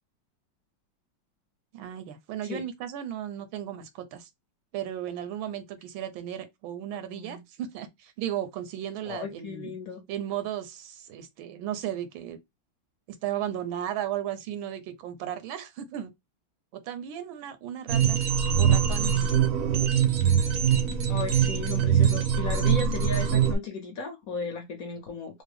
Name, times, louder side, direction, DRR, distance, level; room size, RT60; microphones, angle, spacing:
voice 1, 1.7-4.3 4.7-9.7 10.1-12.4 13.2-16.1 16.7-18.2 18.5-19.3 22.6-23.0, right 11 dB, 85° right, 1.4 m, -35 dB
voice 2, 7.1-7.4 9.0-10.0 21.1-25.4, left 5 dB, 60° left, 1.0 m, -35 dB
sound 1, 17.9-23.5, right 8 dB, 70° right, 0.8 m, -23 dB
3.5 x 2.0 x 3.2 m
omnidirectional pair, 2.2 m